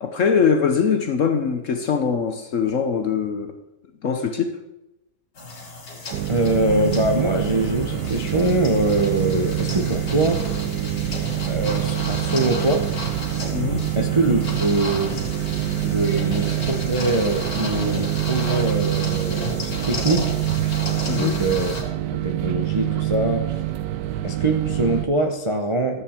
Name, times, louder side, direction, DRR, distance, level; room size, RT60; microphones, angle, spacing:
voice 1, 0.0-3.5 4.0-4.6 13.5-13.9 21.1-21.4, left 6 dB, 55° left, 1.0 m, -22 dB
sound 1, 5.4-21.8, left 3 dB, 80° left, 3.3 m, -34 dB
sound 2, 6.1-25.1, right 14 dB, 75° right, 1.2 m, -26 dB
voice 2, 6.3-10.8 11.5-12.9 14.0-15.2 15.8-20.4 21.1-23.6 24.2-26.0, right 2 dB, 30° right, 0.5 m, -23 dB
sound 3, 6.7-18.0, equal, 20° left, 1.1 m, -39 dB
13.5 x 8.4 x 4.4 m
omnidirectional pair, 1.9 m